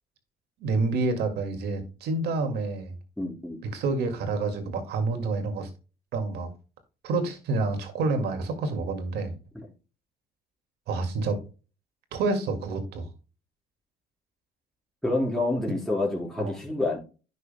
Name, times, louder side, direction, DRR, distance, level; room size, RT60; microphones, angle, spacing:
voice 1, 0.6-2.9 3.6-5.7 6.1-6.5 7.0-9.4 10.9-11.4 12.1-13.1 16.4-16.5, right 3 dB, 75° right, 2.1 m, -28 dB
voice 2, 3.2-3.6 15.0-17.0, left 2 dB, 5° left, 4.4 m, -27 dB
10.5 x 6.5 x 2.2 m
cardioid pair, 110°, 17 cm